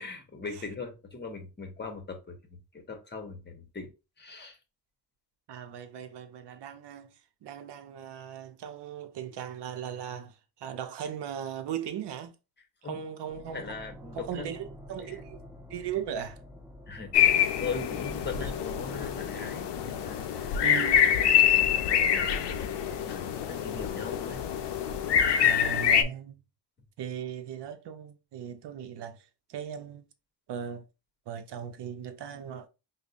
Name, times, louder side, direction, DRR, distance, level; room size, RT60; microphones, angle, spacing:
voice 1, 0.0-3.9 4.2-4.6 12.8-13.0 13.5-14.5 16.9-20.6 21.9-22.6 23.0-24.4, left 4 dB, 25° left, 0.9 m, -40 dB
voice 2, 5.5-12.3 12.8-13.8 14.1-15.4 15.7-16.4 17.3-17.5 18.4-18.5 20.6-21.1 25.4-26.4 27.0-30.1 30.5-30.8 31.3-32.7, right 9 dB, 80° right, 0.6 m, -38 dB
sound 1, 13.3-25.3, equal, 10° right, 0.8 m, -50 dB
sound 2, 17.1-26.0, left 9 dB, 80° left, 0.5 m, -25 dB
5.3 x 2.1 x 2.5 m
wide cardioid pair, 140°, 41 cm